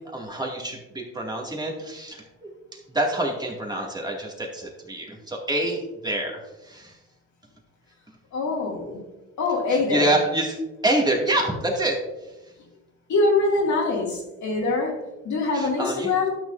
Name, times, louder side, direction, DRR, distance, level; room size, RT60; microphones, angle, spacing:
voice 1, 0.0-6.4 6.7-6.9 9.7-10.6 10.8-12.0 15.5-16.1, right 1 dB, 15° right, -1 dB, 2.1 m, -27 dB
voice 2, 8.3-9.0 9.4-10.1 13.1-16.3, left 3 dB, 70° left, -2 dB, 2.3 m, -24 dB
12.0 x 6.3 x 2.6 m, 1.0 s
cardioid pair, 90°, 30 cm